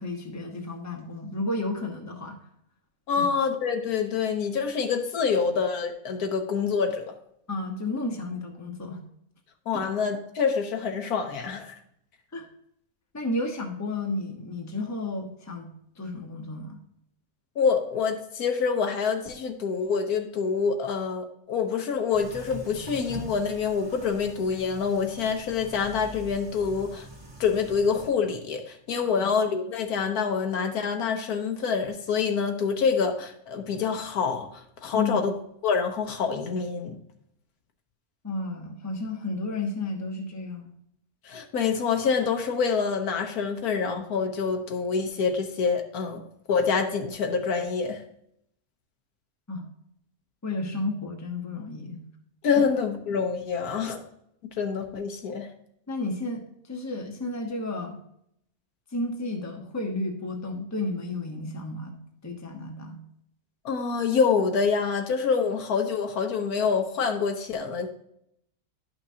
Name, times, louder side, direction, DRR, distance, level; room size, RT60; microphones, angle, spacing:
voice 1, 0.0-2.4 3.2-3.3 7.5-9.0 9.7-9.9 12.3-12.4 13.1-16.8 29.2-29.3 34.9-35.3 38.2-40.7 49.5-49.6 50.4-52.0 52.5-52.6 55.9-56.4 56.7-58.0 58.9-63.0, left 2 dB, 15° left, 2 dB, 0.9 m, -32 dB
voice 2, 3.1-7.1 9.7-11.7 17.6-27.1 27.4-35.3 35.6-37.0 41.2-46.2 46.5-48.0 52.4-54.0 54.6-55.5 63.6-67.9, left 5 dB, 80° left, 4 dB, 1.5 m, -26 dB
sound 1, 22.1-28.1, right 1 dB, 15° right, 1.8 m, -43 dB
11.5 x 5.9 x 2.8 m, 0.73 s
omnidirectional pair, 1.6 m